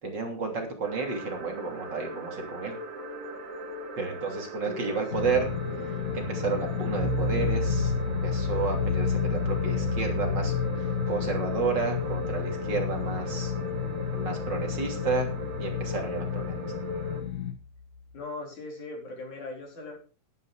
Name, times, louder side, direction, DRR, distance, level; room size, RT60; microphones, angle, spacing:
voice 1, 0.0-2.8 4.0-5.5 5.8-13.5 14.1-15.3 15.6-16.6, right 4 dB, 35° right, 2 dB, 3.5 m, -32 dB
sound 1, 0.8-17.2, left 1 dB, 70° right, 3.5 m, -38 dB
voice 2, 4.6-5.0 18.1-20.0, left 2 dB, 70° left, 1 dB, 5.2 m, -39 dB
sound 2, 5.1-17.5, left 7 dB, 30° left, 1.7 m, -32 dB
sound 3, 7.0-18.1, left 2 dB, 50° left, 4.6 m, -34 dB
12.0 x 9.5 x 4.9 m, 0.35 s
omnidirectional pair, 3.5 m